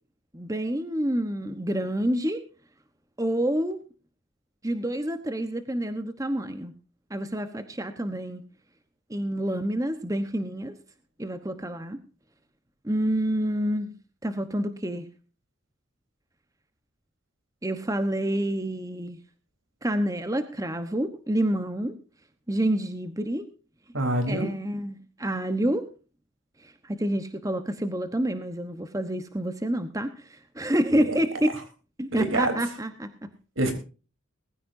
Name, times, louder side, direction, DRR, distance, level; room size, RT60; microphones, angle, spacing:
voice 1, 0.3-2.4 3.2-3.8 4.6-6.7 7.1-8.4 9.1-10.7 11.2-12.0 12.8-13.9 14.2-15.1 17.6-19.2 19.8-21.9 22.5-23.5 24.3-25.9 26.6-31.5 32.0-33.1, right 1 dB, 15° right, 9 dB, 1.0 m, -28 dB
voice 2, 23.9-24.5 30.9-31.2 32.1-32.5 33.6-33.7, right 1 dB, 80° right, 6 dB, 3.8 m, -26 dB
20.0 x 14.5 x 2.7 m, 0.34 s
head